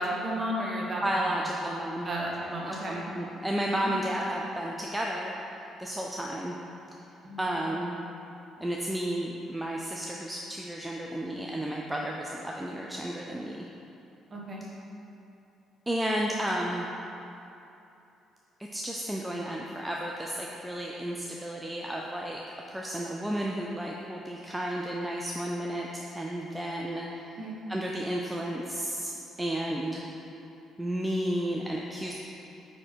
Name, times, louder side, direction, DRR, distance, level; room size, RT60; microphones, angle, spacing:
voice 1, 0.0-1.0 1.3-1.4 2.0-3.0 3.8-3.9 7.2-7.4 14.3-14.6 27.4-27.6, equal, 30° right, -3 dB, 1.2 m, -33 dB
voice 2, 1.0-2.1 2.4-5.3 5.8-6.6 7.4-8.0 8.6-13.7 15.9-16.9 18.7-22.4 22.7-27.4 27.7-29.1 29.4-30.1 30.8-32.1, right 1 dB, 5° right, -2 dB, 0.4 m, -32 dB
8.9 x 4.3 x 4.6 m, 2.8 s
cardioid pair, 165°, 0 cm